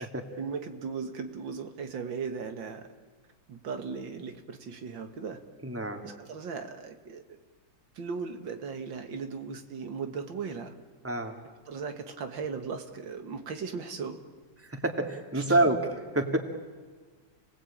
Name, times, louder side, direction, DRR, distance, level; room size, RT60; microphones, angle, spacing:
voice 1, 0.4-2.8 3.5-5.4 6.0-7.2 8.0-10.7 11.7-14.2, right 5 dB, 85° right, 6 dB, 2.4 m, -37 dB
voice 2, 5.6-6.0 11.0-11.3 14.6-16.4, right 2 dB, 5° right, 4 dB, 2.2 m, -27 dB
30.0 x 19.0 x 8.8 m, 1.5 s
omnidirectional pair, 2.0 m